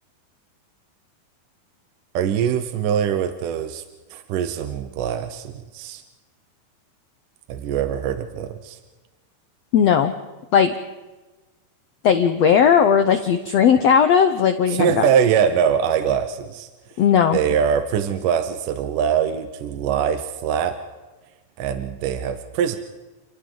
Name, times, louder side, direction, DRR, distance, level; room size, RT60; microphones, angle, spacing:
voice 1, 2.1-3.8 4.1-6.0 7.5-8.8 14.7-16.7 17.3-20.8 21.6-22.8, right 8 dB, 70° right, 8 dB, 2.3 m, -23 dB
voice 2, 9.7-10.1 10.5-10.7 12.0-15.1 17.0-17.4, left 7 dB, 85° left, 8 dB, 1.4 m, -17 dB
29.5 x 28.5 x 3.9 m, 1.2 s
omnidirectional pair, 4.3 m